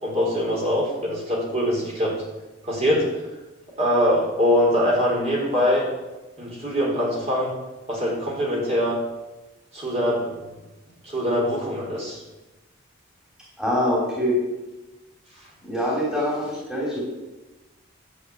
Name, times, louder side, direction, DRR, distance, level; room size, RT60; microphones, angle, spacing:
voice 1, 0.0-2.1 2.6-3.1 3.8-5.9 6.4-7.5 7.9-9.0 9.7-10.4 11.0-12.2, equal, 30° right, -4 dB, 3.8 m, -23 dB
voice 2, 13.6-14.4 15.6-17.0, equal, 5° right, -5 dB, 3.1 m, -24 dB
11.0 x 6.9 x 8.3 m, 1.1 s
head